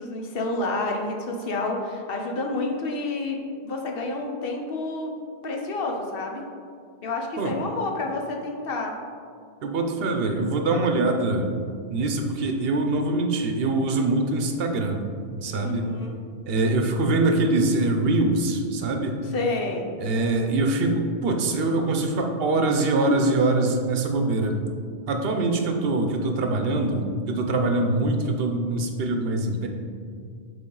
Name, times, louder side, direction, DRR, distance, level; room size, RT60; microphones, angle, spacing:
voice 1, 0.0-3.4 3.6-5.1 5.4-6.4 7.0-9.0 15.6-16.2 19.2-19.9, left 2 dB, 65° left, 1 dB, 0.9 m, -29 dB
voice 2, 9.6-11.5 11.9-15.1 15.3-15.9 16.5-19.2 20.0-24.6 25.1-29.7, right 2 dB, 65° right, 4 dB, 0.8 m, -23 dB
7.8 x 3.5 x 3.8 m, 2.2 s
omnidirectional pair, 1.1 m